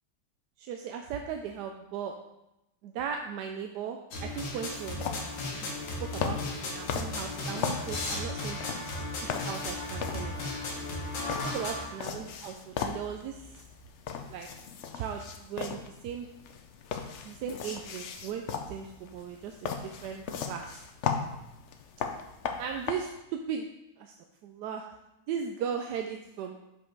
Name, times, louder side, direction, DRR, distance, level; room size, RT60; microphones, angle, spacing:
voice 1, 0.6-2.1 2.8-5.2 5.5-5.7 6.0-8.9 9.2-10.5 11.5-13.6 14.3-14.5 14.9-16.3 17.2-20.8 22.6-23.7 24.0-24.1 24.4-24.9 25.3-26.6, right 7 dB, 75° right, 3 dB, 1.1 m, -37 dB
sound 1, 4.1-11.9, left 2 dB, 85° left, 1.8 m, -35 dB
sound 2, 4.7-22.9, left 6 dB, 70° left, 0.7 m, -38 dB
6.3 x 5.1 x 4.6 m, 0.92 s
omnidirectional pair, 1.9 m